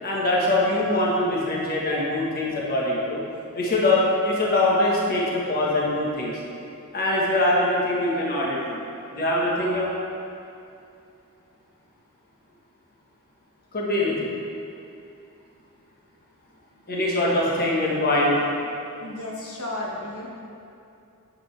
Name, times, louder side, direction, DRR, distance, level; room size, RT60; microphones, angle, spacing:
voice 1, 0.0-3.2 3.5-6.3 6.9-8.8 9.1-9.9 13.7-14.3 16.9-18.4, left 1 dB, 45° left, -4 dB, 1.4 m, -23 dB
voice 2, 19.0-20.3, left 1 dB, 70° left, -3 dB, 1.4 m, -33 dB
10.5 x 7.9 x 3.3 m, 2.6 s
head